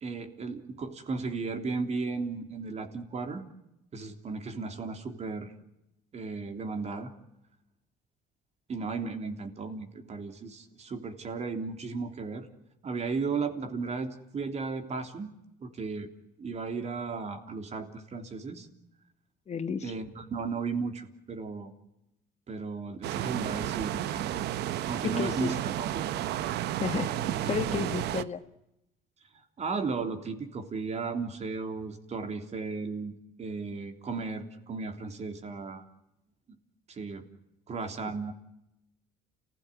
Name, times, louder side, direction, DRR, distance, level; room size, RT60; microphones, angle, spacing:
voice 1, 0.0-3.4 3.9-5.5 6.1-7.1 8.7-12.5 12.8-15.3 15.6-16.1 16.4-18.7 19.8-21.7 22.5-24.4 24.9-26.5 29.6-33.1 33.4-35.8 36.9-37.3 37.7-38.3, right 4 dB, 40° right, 6 dB, 3.4 m, -35 dB
voice 2, 19.5-19.9 25.0-25.5 26.8-28.4, left 7 dB, 40° left, 10 dB, 1.4 m, -32 dB
sound 1, 23.0-28.2, right 12 dB, 80° right, 1.0 m, -32 dB
30.0 x 16.0 x 10.0 m, 0.88 s
cardioid pair, 110°, 17 cm